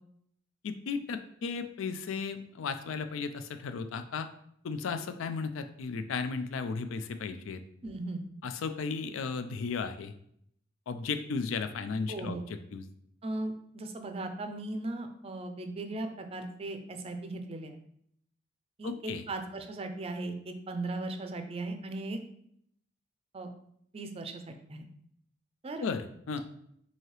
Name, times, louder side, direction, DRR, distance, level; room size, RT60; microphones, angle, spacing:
voice 1, 0.6-4.3 4.6-7.6 8.4-10.1 10.9-12.4 12.7-12.8 18.8-19.2 25.8-26.4, left 5 dB, 85° left, 9 dB, 0.4 m, -35 dB
voice 2, 7.8-8.2 12.1-12.4 13.2-17.8 18.8-22.2 23.3-23.5 23.9-24.9 25.6-25.9, right 2 dB, 30° right, 6 dB, 0.4 m, -37 dB
4.6 x 2.7 x 3.1 m, 0.70 s
head